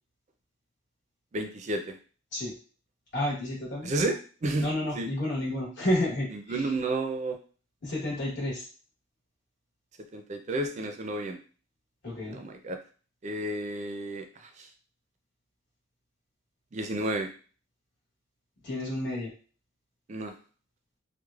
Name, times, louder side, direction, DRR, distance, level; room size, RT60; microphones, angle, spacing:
voice 1, 1.3-2.0 3.8-4.7 4.9-5.1 6.3-7.4 10.1-11.4 12.3-12.8 13.2-14.7 16.7-17.3 20.1-20.3, right 2 dB, 35° right, 5 dB, 0.4 m, -31 dB
voice 2, 3.1-3.9 4.6-6.7 7.8-8.6 12.0-12.4 18.6-19.3, left 1 dB, 60° left, -6 dB, 1.1 m, -30 dB
3.1 x 2.1 x 2.3 m, 0.38 s
head